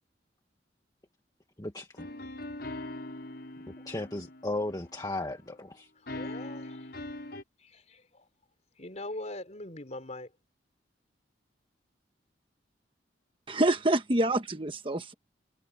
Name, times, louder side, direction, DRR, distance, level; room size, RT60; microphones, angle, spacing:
voice 1, 1.6-2.1 3.9-5.9, left 2 dB, 20° left, 1.9 m, -35 dB
sound 1, 2.0-5.2 6.1-7.4, left 1 dB, 60° left, 6.4 m, -41 dB
voice 2, 6.1-6.9 7.6-8.3 8.8-10.3, left 1 dB, 40° left, 4.5 m, -42 dB
voice 3, 13.5-15.1, right 1 dB, 30° right, 1.3 m, -26 dB
head